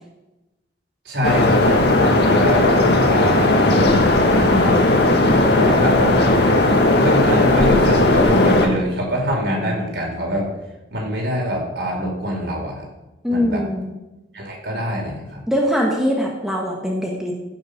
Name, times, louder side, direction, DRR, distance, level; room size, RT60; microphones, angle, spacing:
voice 1, 1.0-10.5 10.9-12.9 13.3-13.6 14.3-15.4, equal, 65° right, -1 dB, 4.6 m, -25 dB
sound 1, 1.2-8.7, left 2 dB, 60° left, 1.9 m, -16 dB
voice 2, 13.2-13.9 15.5-17.3, equal, ahead, -1 dB, 1.9 m, -21 dB
15.5 x 7.1 x 6.7 m, 1.0 s
head